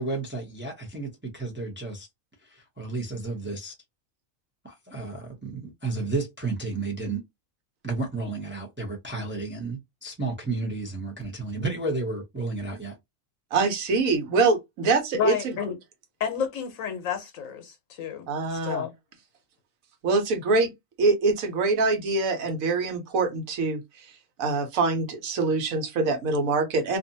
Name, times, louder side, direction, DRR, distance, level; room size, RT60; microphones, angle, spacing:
voice 1, 0.0-2.1 2.4-3.7 4.6-7.2 7.8-13.0, right 3 dB, 15° right, 0.4 m, -32 dB
voice 2, 13.5-15.5 18.3-18.8 20.0-20.7 21.0-24.1 24.4-27.0, right 3 dB, 80° right, 1.2 m, -24 dB
voice 3, 15.1-15.8 16.2-18.9, left 7 dB, 75° left, 1.0 m, -31 dB
2.6 x 2.4 x 2.6 m
omnidirectional pair, 1.4 m